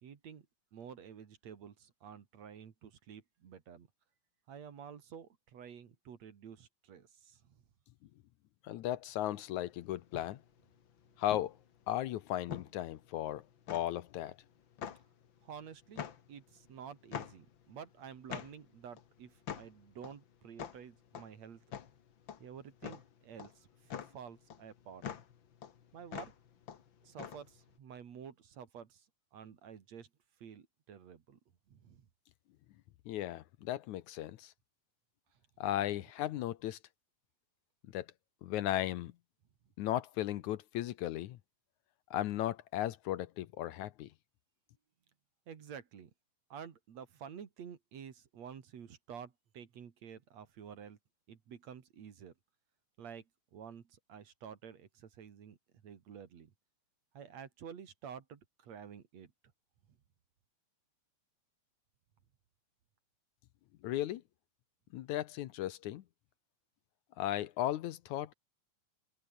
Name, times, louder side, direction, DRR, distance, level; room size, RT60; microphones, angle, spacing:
voice 1, 0.0-0.5 0.7-3.9 4.5-7.6 15.4-21.6 22.4-25.0 25.9-26.3 27.0-29.1 29.3-30.1 30.4-31.4 31.7-32.1 35.3-35.4 45.5-46.1 46.5-51.0 51.3-52.3 53.0-55.6 55.8-56.5 57.1-59.3, right 7 dB, 60° right, 3.2 m, -50 dB
voice 2, 8.6-10.4 11.2-11.6 11.9-14.4 33.1-34.5 35.6-36.8 37.9-38.1 38.4-39.1 39.8-41.4 42.1-44.1 63.8-64.2 64.9-66.0 67.2-68.3, left 13 dB, 70° left, 2.2 m, -36 dB
sound 1, 9.2-27.8, left 8 dB, 45° left, 1.8 m, -46 dB
omnidirectional pair, 3.7 m